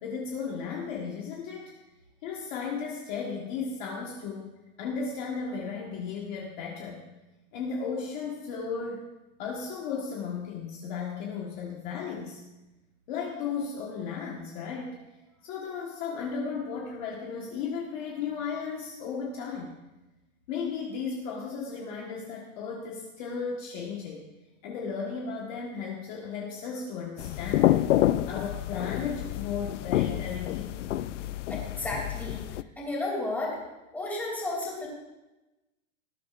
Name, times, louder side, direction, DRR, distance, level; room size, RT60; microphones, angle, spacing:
voice 1, 0.0-1.7 2.2-4.5 4.8-7.0 7.5-9.0 9.4-12.4 13.1-15.0 15.4-19.8 20.5-24.2 24.6-27.8 28.3-31.0, left 5 dB, 35° left, -2 dB, 1.6 m, -35 dB
sound 1, 27.2-32.6, left 13 dB, 60° left, 0.6 m, -28 dB
voice 2, 31.5-32.4 32.8-33.6 33.9-34.9, left 2 dB, 5° left, -4 dB, 2.9 m, -32 dB
19.0 x 11.5 x 2.6 m, 1.0 s
supercardioid pair, 175°, 41 cm